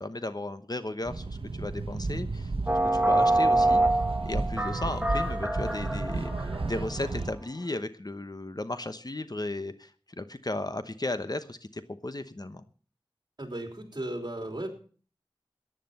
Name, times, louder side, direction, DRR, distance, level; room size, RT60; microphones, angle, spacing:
voice 1, 0.0-3.8 4.2-12.6, left 2 dB, 45° left, 11 dB, 1.0 m, -35 dB
sound 1, 1.1-7.3, right 3 dB, 80° right, 1.0 m, -33 dB
sound 2, 2.7-7.2, right 2 dB, 10° right, 2.0 m, -26 dB
voice 2, 13.4-14.7, right 1 dB, 45° right, 3 dB, 3.6 m, -35 dB
15.0 x 10.0 x 5.5 m, 0.42 s
wide cardioid pair, 45°, 10 cm